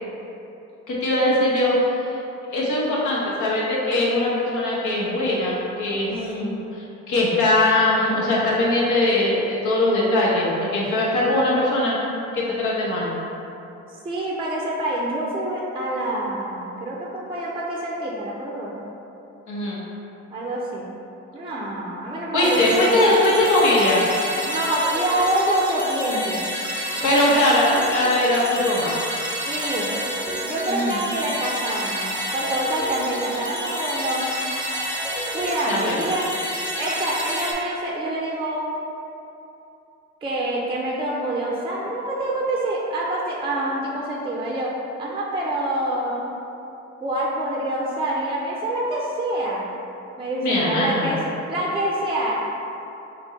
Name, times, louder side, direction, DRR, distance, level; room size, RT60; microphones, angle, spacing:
voice 1, 0.9-2.2 2.5-6.5 7.1-11.9 12.3-13.1 19.5-19.8 22.3-24.0 27.0-28.9 30.7-31.0 35.7-36.0 50.4-51.1, left 1 dB, 80° left, -5 dB, 1.0 m, -21 dB
voice 2, 14.0-18.8 20.3-20.9 21.3-23.0 24.4-26.5 26.9-27.5 29.4-29.9 30.4-34.3 35.3-36.3 36.7-38.7 40.2-46.4 47.0-49.7 50.2-51.2 51.5-52.3, right 1 dB, 20° right, -4 dB, 0.5 m, -26 dB
sound 1, 22.4-37.5, equal, 5° left, 0.8 m, -29 dB
4.4 x 2.1 x 3.9 m, 2.9 s
cardioid pair, 90°, 30 cm